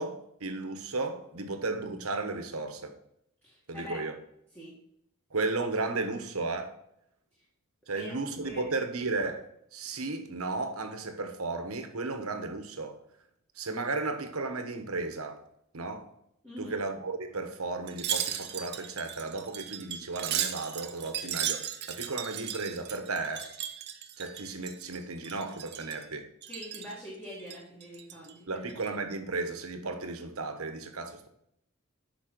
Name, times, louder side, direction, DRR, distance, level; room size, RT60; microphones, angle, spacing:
voice 1, 0.0-2.9 3.7-4.1 5.3-6.7 7.9-13.0 13.6-15.4 15.7-16.1 16.6-21.6 21.9-23.4 24.2-26.3 28.5-31.3, right 3 dB, 70° right, 1.2 m, -34 dB
voice 2, 3.4-4.0 4.5-4.8 7.9-8.2 8.4-8.6 16.4-16.8 26.5-28.7, equal, 10° left, 2.1 m, -43 dB
Wind chime, 17.9-25.0 25.2-26.0 26.4-26.9 27.4-28.3 28.7-28.9, right 10 dB, 50° right, 0.7 m, -36 dB
8.9 x 5.9 x 4.5 m
head